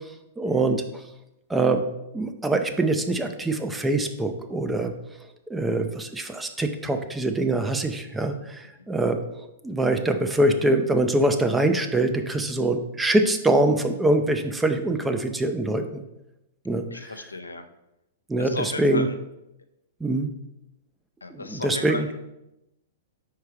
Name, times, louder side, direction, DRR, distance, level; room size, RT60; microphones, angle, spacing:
voice 1, 0.4-0.8 1.5-1.8 2.1-4.9 5.5-9.2 9.6-16.0 16.7-17.1 18.3-19.1 20.0-20.3 21.3-22.1, right 2 dB, 10° right, 6 dB, 0.5 m, -24 dB
voice 2, 16.9-17.6 18.4-19.2 21.2-22.2, left 3 dB, 85° left, 7 dB, 0.5 m, -34 dB
4.7 x 4.5 x 4.9 m, 0.89 s
figure-of-eight pair, 105°, 0 cm